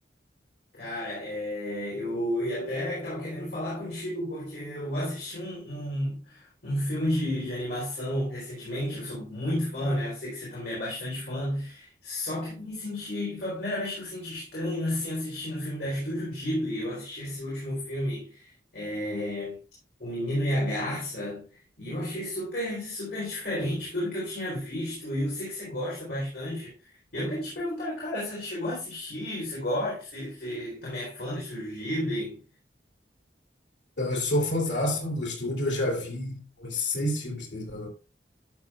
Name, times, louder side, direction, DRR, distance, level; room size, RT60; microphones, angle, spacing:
voice 1, 0.7-19.6 20.0-21.5 21.8-32.4, left 1 dB, 65° left, 3.7 m, -32 dB
voice 2, 34.0-37.9, left 1 dB, 90° left, 3.0 m, -29 dB
11.5 x 6.7 x 2.4 m
head